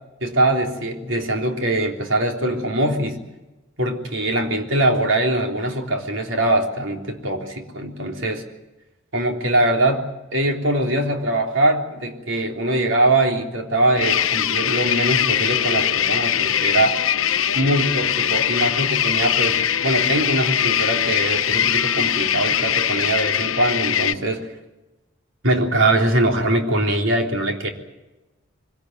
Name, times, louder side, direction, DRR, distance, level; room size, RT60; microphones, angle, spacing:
voice 1, 0.2-3.2 3.8-8.4 9.1-10.1 10.3-17.0 17.5-24.5 25.4-27.7, right 1 dB, 70° right, 2 dB, 3.5 m, -22 dB
sound 1, 14.0-24.1, left 9 dB, 85° left, 1.0 m, -21 dB
24.0 x 17.5 x 9.3 m, 1.1 s
head